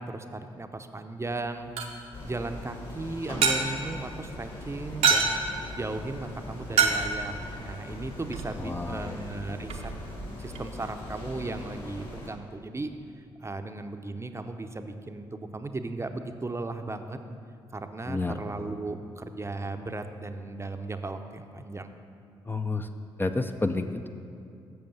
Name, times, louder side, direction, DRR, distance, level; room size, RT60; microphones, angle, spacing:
voice 1, 0.0-5.3 5.8-9.9 10.4-12.9 13.4-17.2 17.7-21.9, right 2 dB, 25° right, 7 dB, 0.7 m, -36 dB
sound 1, 1.3-10.6, right 5 dB, 80° right, 0.9 m, -31 dB
sound 2, 2.1-12.3, left 1 dB, 55° left, 2.5 m, -41 dB
voice 2, 8.6-9.2 18.1-18.4 22.5-22.9 23.2-24.1, left 3 dB, 20° left, 6 dB, 0.5 m, -30 dB
7.9 x 6.9 x 6.9 m, 2.5 s
hypercardioid pair, 45°, 11 cm